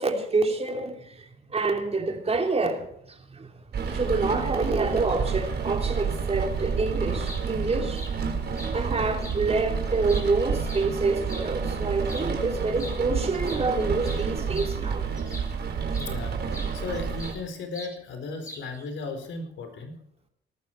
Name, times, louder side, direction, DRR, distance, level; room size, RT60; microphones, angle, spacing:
voice 1, 0.0-8.0 8.7-15.0, right 3 dB, 30° right, 3.0 m, -27 dB
Rain, 3.7-17.3, right 6 dB, 55° right, 3.9 m, -29 dB
sound 1, 7.2-7.4 7.9-8.1 8.6-8.7 9.2-9.4 9.9-11.5 12.0-12.3 12.8-13.0 13.2-15.6 15.9-16.1 16.5-17.4 17.7-18.0 18.4-18.8, left 1 dB, 15° left, 5.3 m, -42 dB
voice 2, 16.0-20.0, left 4 dB, 70° left, 4.2 m, -36 dB
18.5 x 14.0 x 4.5 m
cardioid pair, 90°, 20 cm